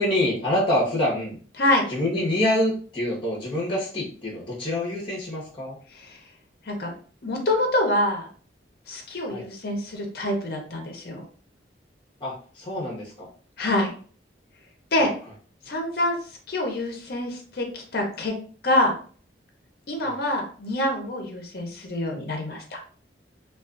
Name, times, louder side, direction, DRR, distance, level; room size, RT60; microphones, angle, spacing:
voice 1, 0.0-1.4 1.9-5.8 9.3-9.5 12.2-13.3 20.0-20.2, left 1 dB, 30° left, -5 dB, 0.9 m, -26 dB
voice 2, 7.2-8.3 8.9-11.2 13.6-13.9 14.9-15.1 15.7-16.2 16.5-18.3 18.6-18.9 19.9-22.8, left 1 dB, 55° left, 2 dB, 0.6 m, -26 dB
2.4 x 2.3 x 2.4 m, 0.42 s
head